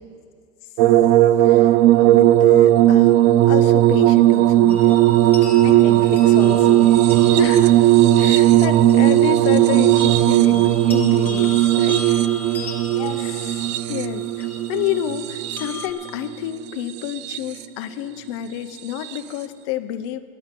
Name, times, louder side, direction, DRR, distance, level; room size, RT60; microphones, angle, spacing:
sound 1, 0.8-16.0 16.9-17.6 19.0-19.2, right 14 dB, 60° right, 0.5 m, -16 dB
voice 1, 1.4-4.9 7.4-7.8 8.2-12.2 13.2-13.4 13.9-20.2, left 11 dB, 55° left, 8 dB, 0.7 m, -29 dB
sound 2, 4.7-15.9, left 5 dB, 10° left, 1.6 m, -39 dB
voice 2, 5.6-7.1 12.9-13.7, left 6 dB, 35° left, -2 dB, 1.4 m, -32 dB
13.5 x 10.0 x 7.5 m, 2.1 s
supercardioid pair, 170°, 17 cm